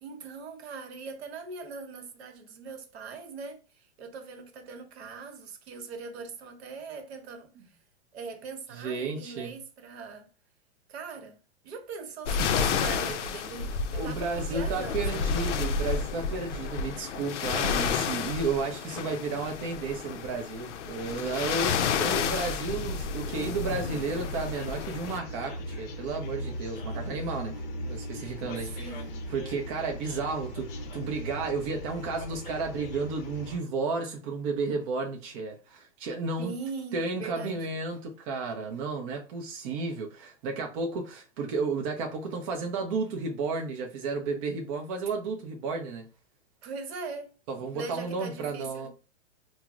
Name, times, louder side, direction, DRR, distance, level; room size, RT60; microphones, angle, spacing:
voice 1, 0.0-7.8 8.1-10.3 10.9-11.3 11.6-15.4 22.0-22.5 28.7-29.3 36.4-37.7 46.6-47.3 47.7-48.9, right 4 dB, 65° right, 0.9 m, -41 dB
voice 2, 8.7-9.5 13.9-28.9 29.3-36.5 36.9-46.1 47.5-48.9, right 4 dB, 30° right, 0.4 m, -33 dB
sound 1, 12.3-25.2, left 6 dB, 85° left, 0.5 m, -31 dB
sound 2, 22.9-33.6, equal, 35° left, 0.6 m, -38 dB
4.5 x 2.0 x 2.3 m
hypercardioid pair, 135°, 35 cm